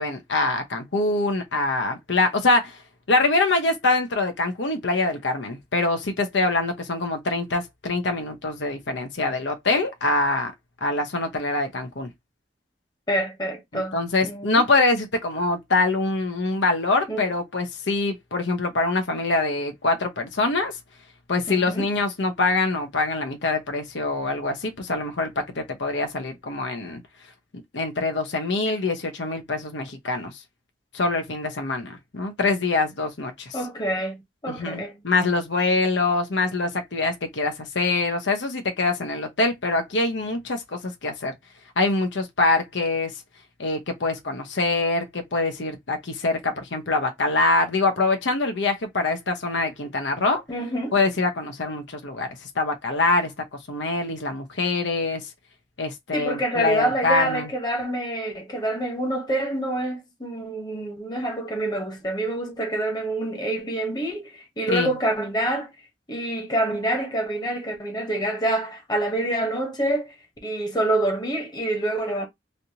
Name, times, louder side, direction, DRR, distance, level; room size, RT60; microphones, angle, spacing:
voice 1, 0.0-2.8 3.1-10.5 10.8-12.1 13.7-20.7 21.3-27.0 27.7-30.3 30.9-33.6 34.5-41.3 41.8-43.1 43.6-50.4 50.9-53.3 53.7-55.3 55.8-57.5 64.7-64.9, left 3 dB, 85° left, 0.9 m, -24 dB
voice 2, 13.1-14.0 14.2-14.6 17.1-17.2 21.5-21.9 33.5-35.0 50.5-51.0 56.1-65.7 66.1-70.1 70.4-72.3, right 1 dB, 25° left, 1.0 m, -27 dB
3.2 x 2.7 x 2.8 m
head